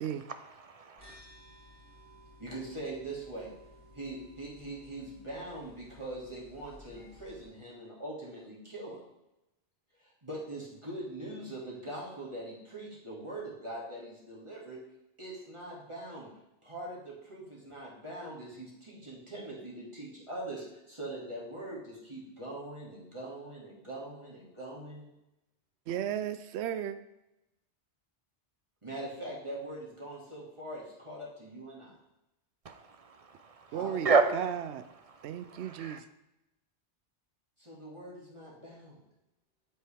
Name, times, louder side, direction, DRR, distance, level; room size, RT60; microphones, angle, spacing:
voice 1, 0.7-1.1 32.7-33.7 34.0-34.2 35.5-36.0, right 4 dB, 45° right, 8 dB, 0.5 m, -29 dB
sound 1, 1.0-7.5, left 2 dB, 10° right, 2.8 m, -56 dB
voice 2, 2.4-3.5 3.9-9.1 10.0-14.8 15.2-16.3 16.6-25.1 28.8-32.0 33.7-34.5 37.6-39.0, right 1 dB, 25° right, -4 dB, 2.2 m, -42 dB
voice 3, 25.9-27.0 33.7-34.8 35.2-36.0, right 10 dB, 70° right, 12 dB, 0.8 m, -35 dB
8.4 x 7.8 x 3.4 m, 0.92 s
omnidirectional pair, 1.2 m